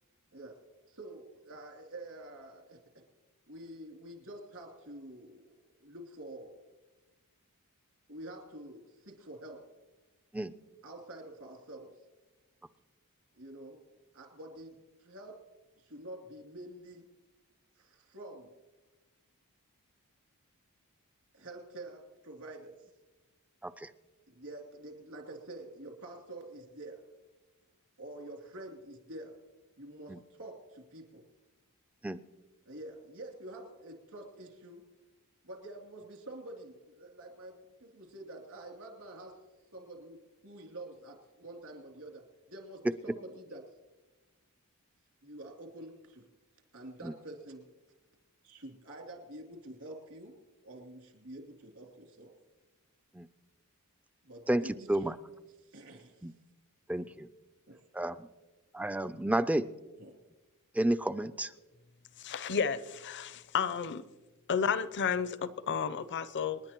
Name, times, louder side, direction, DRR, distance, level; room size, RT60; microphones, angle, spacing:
voice 1, 0.9-2.8 3.5-5.5 5.8-6.5 8.1-9.7 10.8-12.0 13.3-13.8 14.1-15.4 15.8-17.1 17.8-18.5 21.3-22.9 24.3-27.0 28.0-29.4 29.8-31.2 32.6-34.8 35.4-39.4 39.7-43.7 45.2-46.3 46.7-47.7 48.4-50.3 50.6-52.3 54.2-55.0 55.6-56.3 57.7-57.8 60.0-60.2, right 1 dB, 70° right, 2 dB, 2.9 m, -47 dB
voice 2, 54.5-55.2 56.2-56.3 56.9-57.3 57.9-58.3 58.7-59.7 60.7-61.5, right 1 dB, 5° right, 13 dB, 0.3 m, -31 dB
voice 3, 62.2-64.0 64.5-66.6, left 6 dB, 55° left, 15 dB, 0.6 m, -32 dB
28.0 x 10.5 x 3.0 m, 1.2 s
head